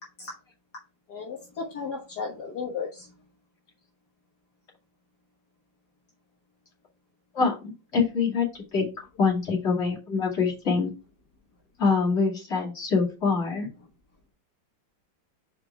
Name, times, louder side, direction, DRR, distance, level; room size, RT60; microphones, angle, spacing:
voice 1, 1.1-3.2, left 5 dB, 55° left, -3 dB, 2.0 m, -35 dB
voice 2, 7.3-8.9 9.2-10.9 11.8-13.7, left 5 dB, 35° left, -4 dB, 2.7 m, -25 dB
5.9 x 5.0 x 3.6 m, 0.31 s
omnidirectional pair, 2.1 m